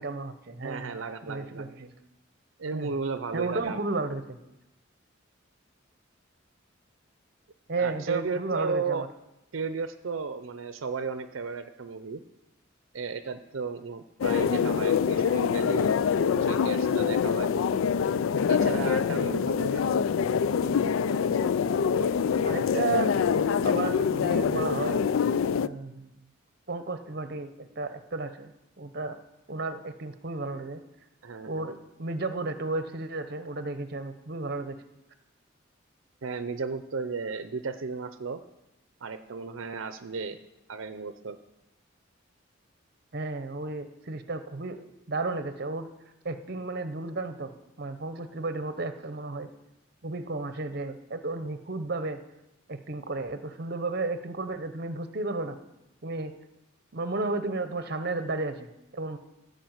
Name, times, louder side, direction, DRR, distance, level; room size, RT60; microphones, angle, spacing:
voice 1, 0.0-1.0 1.3-1.9 2.7-2.9 3.3-4.4 7.7-9.1 22.4-23.1 23.5-25.0 25.6-26.1 26.7-28.5 28.8-29.2 29.5-30.8 31.4-34.8 43.1-45.9 46.2-49.5 50.0-52.2 52.7-55.6 56.0-56.3 56.9-59.2, right 3 dB, 50° right, 10 dB, 0.8 m, -33 dB
voice 2, 0.6-1.7 2.6-3.8 7.8-9.0 9.5-12.2 12.9-15.9 16.4-17.5 18.5-19.9 31.2-31.8 36.2-38.4 39.0-40.4 40.7-41.4, right 4 dB, 80° right, 10 dB, 0.6 m, -34 dB
sound 1, 14.2-25.7, left 6 dB, 85° left, 0.3 m, -25 dB
14.5 x 5.2 x 8.0 m, 0.91 s
head